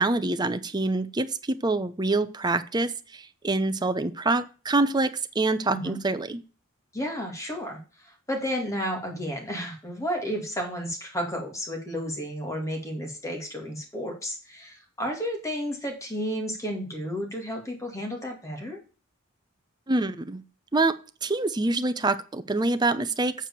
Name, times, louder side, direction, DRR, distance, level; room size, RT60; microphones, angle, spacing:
voice 1, 0.0-6.4 19.9-20.4 20.7-20.9 21.2-23.3, right 2 dB, 20° right, 10 dB, 0.7 m, -26 dB
voice 2, 6.9-18.8, equal, 15° left, 2 dB, 2.3 m, -32 dB
7.6 x 4.7 x 6.8 m, 0.35 s
head